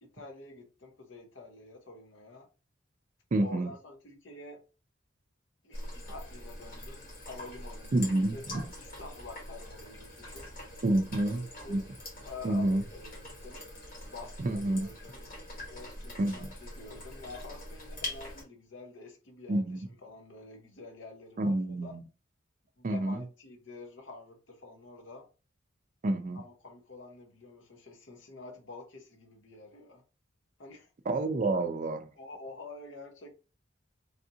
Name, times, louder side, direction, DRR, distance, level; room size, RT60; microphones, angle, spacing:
voice 1, 0.0-2.5 3.4-4.6 5.6-8.4 8.8-10.5 10.9-11.8 12.2-13.1 13.4-13.6 14.1-15.3 15.7-21.9 22.8-25.3 26.3-30.0 30.6-30.9 32.2-33.3, left 3 dB, 70° left, 0.7 m, -48 dB
voice 2, 3.3-3.7 7.9-8.6 10.8-11.8 12.4-12.8 14.4-14.9 16.2-16.5 19.5-19.9 21.4-22.0 22.8-23.2 26.0-26.4 31.1-32.1, right 2 dB, 40° right, 0.4 m, -29 dB
sound 1, 5.7-18.4, left 1 dB, 45° left, 1.4 m, -44 dB
3.4 x 2.5 x 2.7 m
head